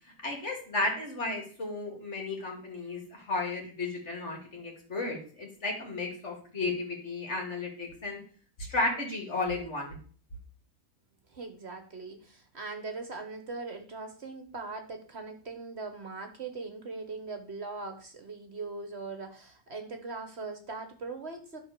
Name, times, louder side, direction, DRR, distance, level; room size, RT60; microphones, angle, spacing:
voice 1, 0.2-8.2 8.6-10.0, left 2 dB, 50° left, 1 dB, 2.7 m, -33 dB
voice 2, 11.3-21.6, right 3 dB, 50° right, 6 dB, 1.4 m, -40 dB
11.5 x 4.0 x 6.8 m, 0.43 s
omnidirectional pair, 1.5 m